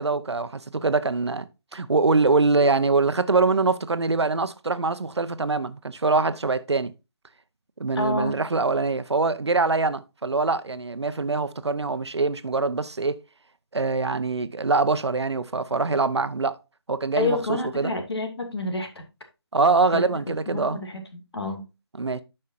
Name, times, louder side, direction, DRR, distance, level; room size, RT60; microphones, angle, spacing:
voice 1, 0.0-6.9 7.8-13.2 13.7-16.6 16.9-17.9 19.5-20.8 22.0-22.2, right 3 dB, 85° right, 0.8 m, -24 dB
voice 2, 8.0-8.4 17.2-19.0 19.9-20.0 20.5-21.6, left 2 dB, 70° left, 2.4 m, -28 dB
12.0 x 5.6 x 2.6 m
figure-of-eight pair, 155°, 14 cm